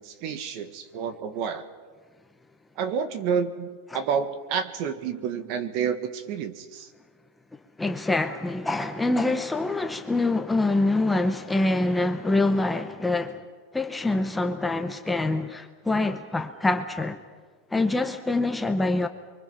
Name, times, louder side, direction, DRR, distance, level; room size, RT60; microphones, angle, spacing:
voice 1, 0.0-1.6 2.8-6.9, right 7 dB, 40° right, 1.7 m, -29 dB
voice 2, 7.8-13.4 13.7-17.2 17.7-19.1, left 2 dB, 5° left, 0.8 m, -25 dB
30.0 x 24.0 x 5.7 m
supercardioid pair, 170°, 0 cm